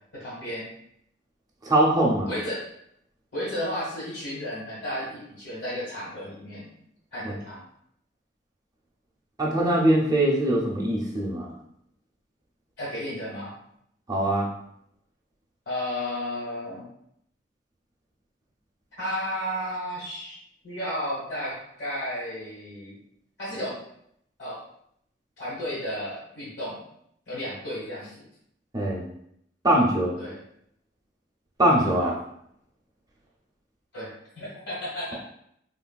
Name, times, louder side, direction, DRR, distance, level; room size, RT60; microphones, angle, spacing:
voice 1, 0.1-0.7 2.3-2.7 3.3-6.7 7.1-7.6 12.8-13.6 15.6-16.8 19.0-20.4 20.6-23.0 23.4-23.8 24.4-24.6 25.4-26.8 27.3-28.2 30.2-30.4 33.9-35.1, equal, 70° left, -8 dB, 1.4 m, -33 dB
voice 2, 1.7-2.3 7.2-7.3 9.4-11.5 14.1-14.5 28.7-29.1 29.6-30.2 31.6-32.2, right 1 dB, 20° right, -3 dB, 0.6 m, -22 dB
3.4 x 2.5 x 2.3 m, 0.73 s
head